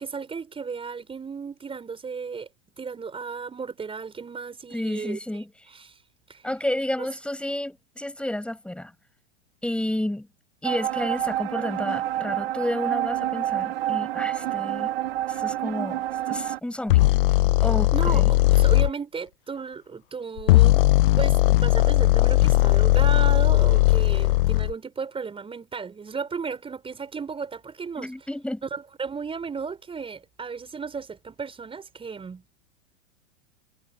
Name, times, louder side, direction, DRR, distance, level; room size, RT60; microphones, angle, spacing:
voice 1, 0.0-2.5 2.8-5.2 5.7-6.0 6.3-6.5 7.0-7.1 17.9-20.8 21.1-28.3 28.7-32.4, right 5 dB, 15° right, 5.2 m, -34 dB
voice 2, 4.7-5.5 6.4-8.9 9.6-10.3 10.6-14.9 15.3-17.0 17.6-18.3 28.0-28.6, left 1 dB, 5° left, 6.1 m, -31 dB
sound 1, 10.6-16.6, right 13 dB, 55° right, 1.5 m, -28 dB
sound 2, 16.9-18.9 20.4-24.7, left 18 dB, 50° left, 0.8 m, -18 dB
figure-of-eight pair, 95°, 36 cm